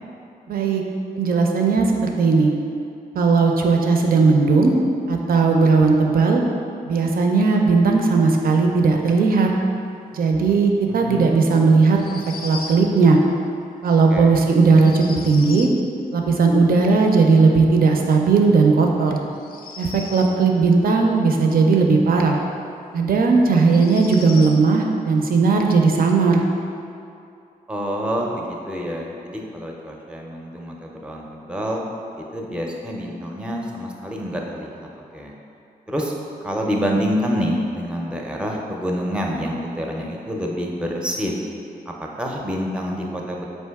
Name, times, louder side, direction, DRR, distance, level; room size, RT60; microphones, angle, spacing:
voice 1, 0.5-0.8 1.1-2.5 3.1-4.7 5.1-6.4 6.9-9.5 10.1-13.2 13.8-15.7 16.1-19.2 19.8-22.4 22.9-26.4, right 4 dB, 65° right, 2 dB, 0.5 m, -17 dB
voice 2, 10.9-11.4 14.1-14.3 27.7-31.8 32.2-35.3 35.9-36.1 36.4-41.4 41.9-43.4, equal, 5° right, -1 dB, 0.5 m, -27 dB
sound 1, 11.9-12.8 14.7-15.8 19.3-20.4 22.5-22.6 23.6-24.6, left 4 dB, 65° left, 0.4 m, -37 dB
4.4 x 2.6 x 3.4 m, 2.6 s
cardioid pair, 75°, 16 cm